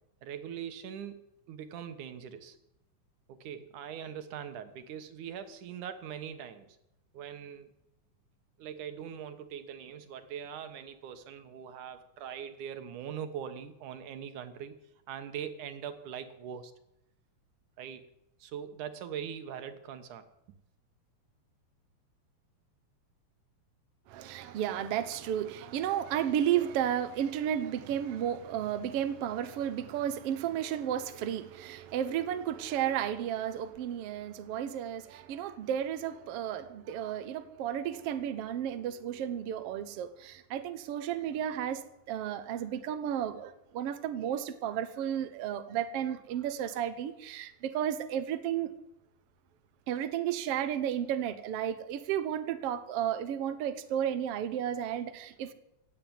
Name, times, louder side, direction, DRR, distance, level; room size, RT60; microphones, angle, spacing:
voice 1, 0.2-1.2 1.5-2.6 3.3-6.8 7.1-7.7 8.6-14.8 15.1-16.7 17.8-18.0 18.4-20.3, right 8 dB, 85° right, 2.8 m, -41 dB
voice 2, 24.1-48.7 49.9-55.5, right 10 dB, 60° right, 1.8 m, -33 dB
16.0 x 9.6 x 9.3 m
omnidirectional pair, 3.5 m